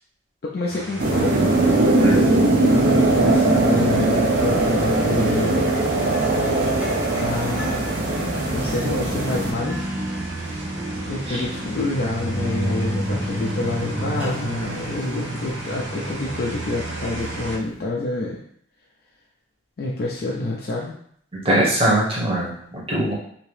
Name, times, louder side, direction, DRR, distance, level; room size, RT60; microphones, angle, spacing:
voice 1, 0.4-1.5 2.6-5.6 7.2-7.9 8.5-9.9 10.3-10.7 11.1-18.4 19.8-21.0, left 2 dB, 50° left, -3 dB, 0.4 m, -28 dB
sound 1, 0.7-17.6, right 1 dB, 85° right, 0.7 m, -33 dB
sound 2, 1.0-9.5, right 2 dB, 45° right, 0.5 m, -20 dB
voice 2, 2.0-2.3 11.3-11.4 21.4-23.1, right 1 dB, 30° right, -5 dB, 0.9 m, -21 dB
sound 3, 3.2-17.8, equal, 5° right, 0.7 m, -33 dB
2.8 x 2.7 x 3.2 m, 0.65 s
head